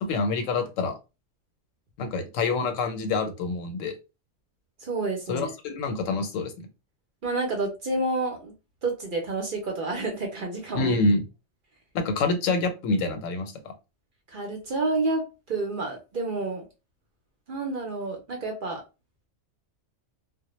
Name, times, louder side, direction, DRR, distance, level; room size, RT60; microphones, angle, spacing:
voice 1, 0.0-1.0 2.0-4.0 5.3-6.5 10.7-11.2 11.9-13.7, left 3 dB, 90° left, 7 dB, 1.0 m, -26 dB
voice 2, 4.8-5.5 7.2-8.5 8.8-11.0 14.3-16.6 17.5-18.8, right 2 dB, 50° right, 1 dB, 0.7 m, -29 dB
2.1 x 2.1 x 3.0 m, 0.28 s
omnidirectional pair, 1.3 m